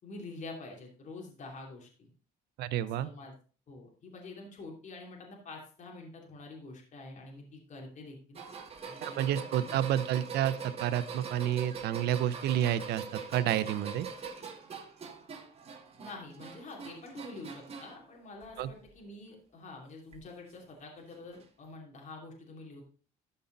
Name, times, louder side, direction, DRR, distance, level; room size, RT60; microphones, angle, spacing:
voice 1, 0.0-2.1 3.0-3.3 3.7-8.4 8.8-9.2 9.6-9.7 16.0-22.8, left 3 dB, 45° left, 0 dB, 2.9 m, -47 dB
voice 2, 2.6-3.1 9.0-14.1 18.6-18.7, right 11 dB, 75° right, 15 dB, 0.7 m, -30 dB
sound 1, 8.3-18.0 18.4-19.0 20.1-20.2 21.3-21.4, right 5 dB, 35° right, 2.0 m, -43 dB
13.0 x 5.5 x 4.0 m, 0.40 s
cardioid pair, 110°, 17 cm